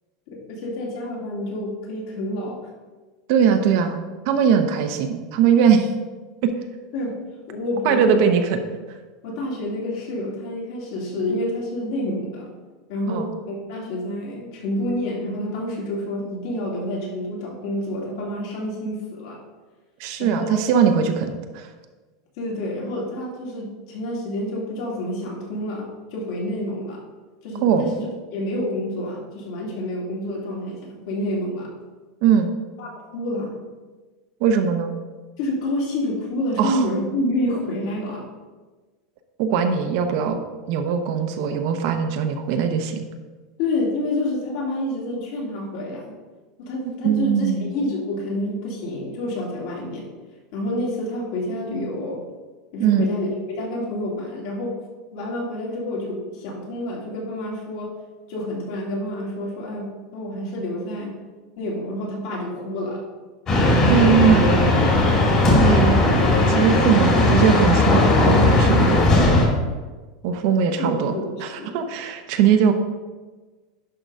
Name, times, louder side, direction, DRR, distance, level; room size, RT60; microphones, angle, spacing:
voice 1, 0.3-2.6 6.9-7.2 7.5-8.2 9.2-12.5 12.9-19.4 20.2-20.6 22.4-27.0 27.4-27.9 28.3-31.7 32.8-33.6 35.4-38.3 43.6-46.1 46.6-50.0 50.5-52.2 52.7-53.3 53.5-54.7 55.1-57.9 58.3-61.1 61.6-63.0 70.8-71.8, left 1 dB, 55° left, -3 dB, 2.7 m, -28 dB
voice 2, 3.3-4.0 4.2-5.9 6.4-6.5 7.8-8.6 13.1-13.3 20.0-21.7 27.6-27.9 32.2-32.5 34.4-34.9 36.6-36.8 39.4-40.4 40.7-43.1 47.0-47.7 52.8-53.1 63.9-64.7 65.6-69.3 70.2-72.7, right 7 dB, 50° right, 6 dB, 0.8 m, -20 dB
sound 1, 63.5-69.5, left 2 dB, 25° left, 1.9 m, -17 dB
11.0 x 3.9 x 5.5 m, 1.3 s
supercardioid pair, 175°, 3 cm